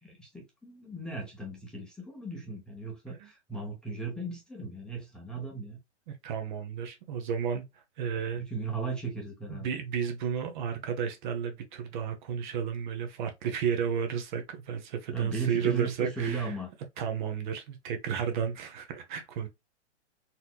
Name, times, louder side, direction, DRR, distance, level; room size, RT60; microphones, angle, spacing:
voice 1, 0.0-5.8 8.4-9.7 15.1-16.7, right 4 dB, ahead, 0.7 m, -36 dB
voice 2, 6.1-8.4 9.5-16.5 17.0-19.5, right 7 dB, 40° right, 0.7 m, -32 dB
4.2 x 2.7 x 2.2 m
hypercardioid pair, 140°, 35 cm